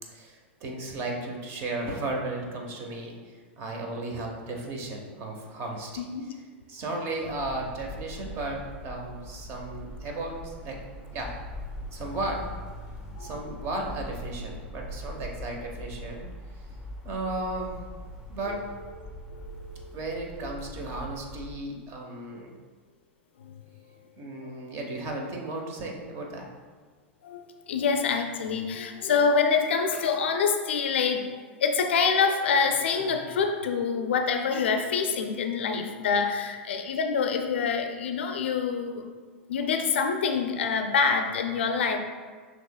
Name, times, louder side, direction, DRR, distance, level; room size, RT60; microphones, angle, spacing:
voice 1, 0.1-6.0 6.7-10.8 11.1-11.3 11.9-12.4 13.2-16.3 16.5-16.7 17.0-17.8 18.3-18.7 19.9-22.5 24.2-26.5, right 2 dB, 45° right, 1 dB, 0.9 m, -35 dB
voice 2, 6.0-6.3 13.2-13.4 18.5-18.7 19.3-20.0 23.4-23.7 24.4-24.6 27.2-39.1 39.5-42.0, left 5 dB, 75° left, 6 dB, 0.4 m, -26 dB
sound 1, 7.2-21.5, equal, 10° right, 0.7 m, -41 dB
6.0 x 3.0 x 2.2 m, 1.5 s
hypercardioid pair, 95°, 6 cm